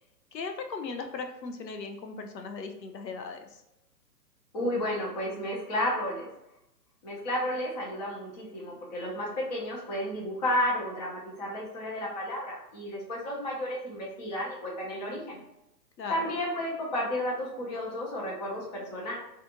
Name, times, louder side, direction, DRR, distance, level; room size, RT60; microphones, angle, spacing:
voice 1, 0.3-3.5 16.0-16.2, left 4 dB, 85° left, 5 dB, 0.5 m, -37 dB
voice 2, 4.5-6.3 7.0-15.4 16.1-19.2, left 1 dB, 25° left, -3 dB, 0.6 m, -32 dB
2.4 x 2.4 x 2.8 m, 0.88 s
figure-of-eight pair, 125°, 50 cm